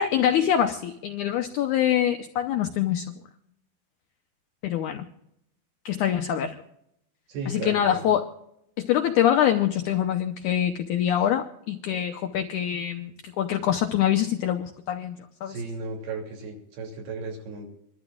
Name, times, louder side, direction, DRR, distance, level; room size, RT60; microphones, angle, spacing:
voice 1, 0.0-3.1 4.6-5.0 5.9-6.6 7.5-8.3 8.8-15.5, left 10 dB, 85° left, 1.7 m, -24 dB
voice 2, 7.3-8.1 15.5-17.7, right 3 dB, 85° right, 4.9 m, -35 dB
27.0 x 12.5 x 2.4 m
omnidirectional pair, 4.4 m